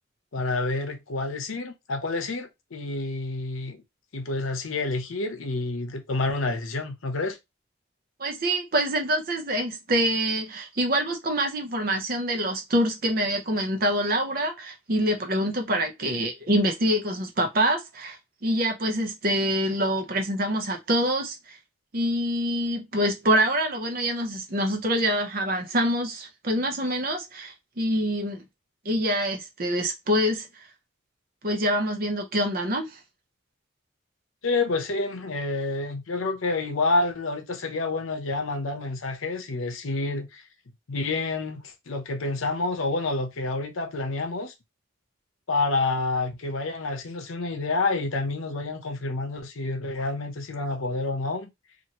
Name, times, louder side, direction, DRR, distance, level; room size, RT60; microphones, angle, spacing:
voice 1, 0.3-3.8 4.1-7.4 34.4-40.4 40.9-44.5 45.5-51.5, left 3 dB, 80° left, 0.7 m, -28 dB
voice 2, 8.2-18.2 18.4-21.6 21.9-28.4 28.8-30.5 31.4-33.0, equal, 45° right, 0.7 m, -25 dB
2.8 x 2.6 x 2.9 m
head